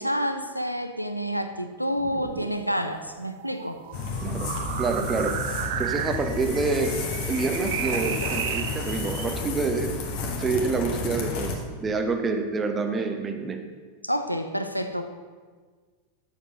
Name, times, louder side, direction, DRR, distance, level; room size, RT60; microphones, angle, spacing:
voice 1, 0.0-3.8 14.0-15.0, equal, 90° left, 8 dB, 0.5 m, -28 dB
sound 1, 1.9-9.3, right 10 dB, 55° right, 0.4 m, -34 dB
sound 2, 3.9-11.6, left 3 dB, 45° left, 1.3 m, -31 dB
voice 2, 4.2-4.5 4.8-5.4 5.8-7.0 7.3-9.9 10.4-13.6, right 4 dB, 20° right, 6 dB, 0.9 m, -27 dB
7.2 x 7.0 x 5.2 m, 1.5 s
figure-of-eight pair, 90°, 0 cm